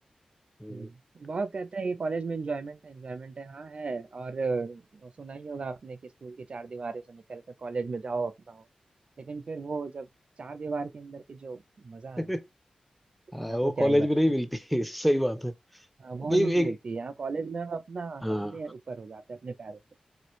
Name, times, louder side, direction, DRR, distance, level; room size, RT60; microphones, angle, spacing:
voice 1, 0.7-8.6 9.2-10.1 10.4-12.4 13.4-14.3 16.0-19.8, right 4 dB, 55° right, 0.5 m, -35 dB
voice 2, 13.3-15.5 16.3-16.7 18.2-18.5, equal, ahead, 0.5 m, -26 dB
3.2 x 2.5 x 3.0 m
cardioid pair, 60°, 2 cm